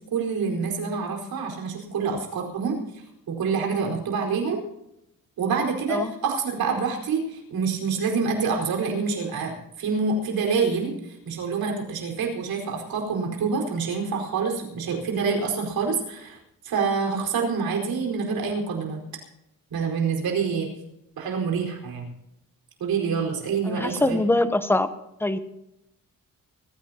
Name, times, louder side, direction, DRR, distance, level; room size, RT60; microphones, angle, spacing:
voice 1, 0.1-2.8 3.3-4.6 5.4-16.4 16.6-19.0 19.7-20.7 21.2-22.1 22.8-24.2, right 5 dB, 85° right, 1 dB, 4.8 m, -26 dB
voice 2, 23.7-24.9 25.2-25.4, left 2 dB, 5° left, 11 dB, 0.9 m, -23 dB
24.0 x 15.0 x 2.9 m, 0.85 s
cardioid pair, 130°, 35 cm